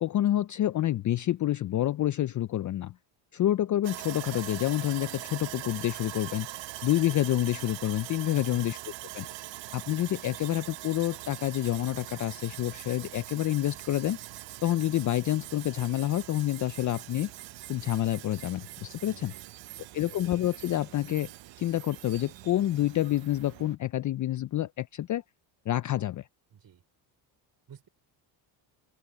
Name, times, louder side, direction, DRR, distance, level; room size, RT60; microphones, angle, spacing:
voice 1, 0.0-2.9 3.3-6.5 6.8-8.8 9.1-9.3 9.7-14.2 14.6-17.3 17.7-19.3 19.9-21.3 21.6-25.2 25.7-26.2, left 13 dB, 40° left, 0.5 m, -28 dB
Sawing, 3.8-23.8, right 15 dB, 60° right, 1.1 m, -43 dB
voice 2, 8.3-8.7 19.1-20.1 26.5-26.8 27.7-27.9, right 8 dB, 45° right, 5.1 m, -53 dB
open air
cardioid pair, 100°, 50 cm